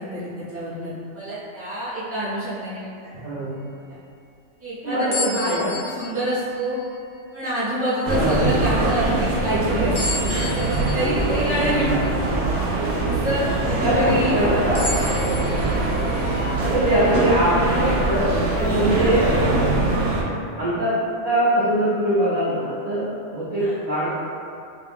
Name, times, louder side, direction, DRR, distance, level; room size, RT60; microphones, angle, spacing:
voice 1, 0.0-3.2 3.9-4.0 4.6-6.8 7.3-10.3 10.7-12.3 13.1-14.8 19.1-19.2 23.5-23.8, right 1 dB, 15° right, -12 dB, 0.8 m, -27 dB
voice 2, 3.2-3.6 4.8-5.7 8.1-8.5 11.7-11.9 12.4-12.6 13.8-14.8 15.6-15.7 16.6-19.3 20.0-20.1 20.5-20.9 21.2-24.1, right 1 dB, 45° right, -11 dB, 0.5 m, -22 dB
sound 1, 5.1-7.5 8.1-8.2 9.9-13.3 13.8-13.9 14.7-17.8, left 3 dB, 80° left, 1.0 m, -34 dB
sound 2, 8.1-20.2, right 2 dB, 75° right, 0.9 m, -22 dB
2.4 x 2.2 x 3.4 m, 2.4 s
omnidirectional pair, 1.3 m